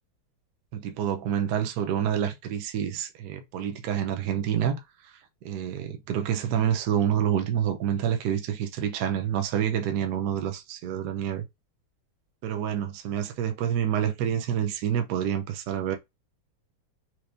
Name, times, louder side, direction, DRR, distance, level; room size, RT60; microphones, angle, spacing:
voice 1, 0.7-5.1 5.4-11.4 12.4-16.0, right 9 dB, 70° right, 1.0 m, -28 dB
4.4 x 3.1 x 2.5 m
omnidirectional pair, 2.3 m